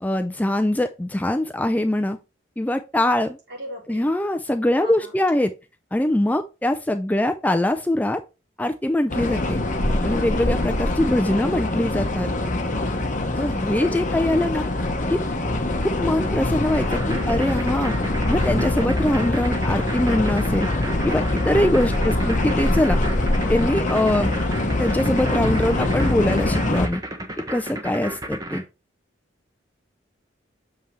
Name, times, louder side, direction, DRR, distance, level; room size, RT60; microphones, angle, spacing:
voice 1, 0.0-2.2 2.6-3.4 3.9-5.5 5.9-8.2 8.6-9.6 10.0-12.3 13.4-14.7 15.1-15.2 15.8-17.9 18.3-20.7 21.0-23.0 23.5-24.4 24.8-27.0 27.5-28.6, left 1 dB, 10° left, 0.3 m, -23 dB
voice 2, 3.5-4.1 4.8-5.2 13.7-14.2 22.0-22.5, left 1 dB, 60° right, 4.3 m, -38 dB
sound 1, 9.1-26.9, left 2 dB, 40° left, 1.0 m, -24 dB
sound 2, 16.7-28.6, right 1 dB, 20° right, 1.1 m, -33 dB
6.9 x 5.5 x 3.2 m
head